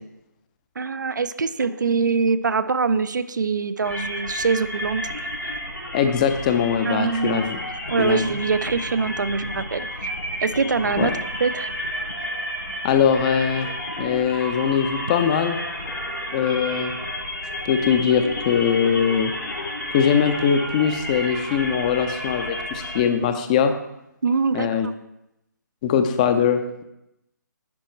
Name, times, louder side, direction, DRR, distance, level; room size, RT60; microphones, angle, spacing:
voice 1, 0.8-5.1 5.4-5.5 6.9-7.5 7.9-10.1 10.4-11.7 24.2-24.9, right 4 dB, 70° right, 13 dB, 0.5 m, -24 dB
sound 1, 3.8-23.0, left 1 dB, 85° left, 3.1 m, -31 dB
voice 2, 5.9-7.6 8.0-8.2 11.0-11.1 12.8-13.7 14.0-15.6 16.3-16.9 17.6-19.3 19.9-23.7 24.5-24.9 25.8-26.8, left 7 dB, 25° left, 8 dB, 0.5 m, -21 dB
10.5 x 4.4 x 4.5 m, 0.86 s
figure-of-eight pair, 145°, 10 cm